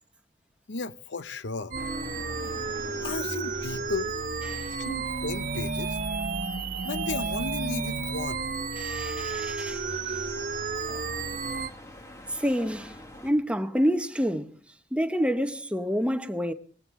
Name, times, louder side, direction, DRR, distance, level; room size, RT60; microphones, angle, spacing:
voice 1, 0.7-1.8 3.0-4.2 4.7-6.0 6.8-8.5, left 4 dB, 75° left, 0.8 m, -34 dB
sound 1, 1.7-13.3, left 1 dB, 15° left, 1.8 m, -47 dB
sound 2, 1.7-11.7, right 4 dB, 45° right, 1.0 m, -32 dB
voice 2, 8.8-10.2 10.9-11.0 12.3-13.0 13.2-14.6 14.9-16.5, equal, 5° right, 0.9 m, -28 dB
20.5 x 16.5 x 3.6 m
head